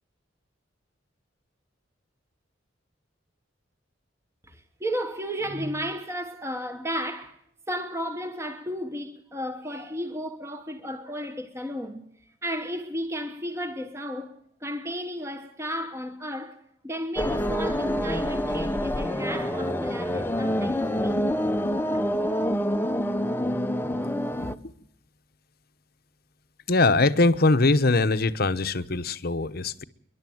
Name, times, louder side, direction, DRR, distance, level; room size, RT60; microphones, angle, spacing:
voice 1, 4.5-7.4 7.7-12.1 12.4-14.4 14.6-21.3, equal, 15° right, 1.3 m, -33 dB
sound 1, 17.2-24.5, equal, 10° left, 0.8 m, -27 dB
voice 2, 24.4-24.7 26.7-29.8, left 3 dB, 55° left, 1.0 m, -22 dB
29.0 x 11.5 x 7.8 m
head